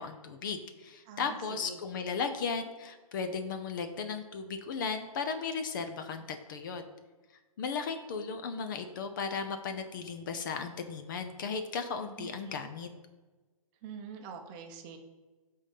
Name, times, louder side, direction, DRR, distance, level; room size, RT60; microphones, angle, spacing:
voice 1, 0.0-6.8 7.6-12.9, left 5 dB, 35° left, 7 dB, 0.6 m, -36 dB
voice 2, 1.0-1.8 12.2-12.6 13.8-15.0, right 6 dB, 20° right, 4 dB, 0.8 m, -45 dB
8.0 x 3.8 x 5.5 m, 1.2 s
hypercardioid pair, 150°, 18 cm